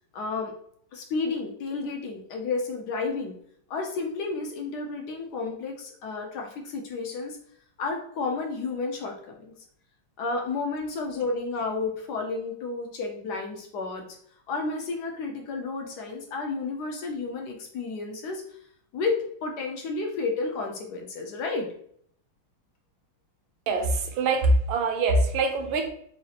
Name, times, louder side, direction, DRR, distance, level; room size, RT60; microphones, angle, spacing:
voice 1, 0.1-0.5 0.9-3.3 3.7-7.4 7.8-9.5 10.2-14.0 14.5-18.4 18.9-21.7, left 3 dB, 75° left, 2 dB, 0.9 m, -31 dB
voice 2, 23.7-25.9, right 2 dB, 75° right, 4 dB, 1.4 m, -23 dB
6.0 x 2.4 x 2.8 m, 0.64 s
omnidirectional pair, 2.4 m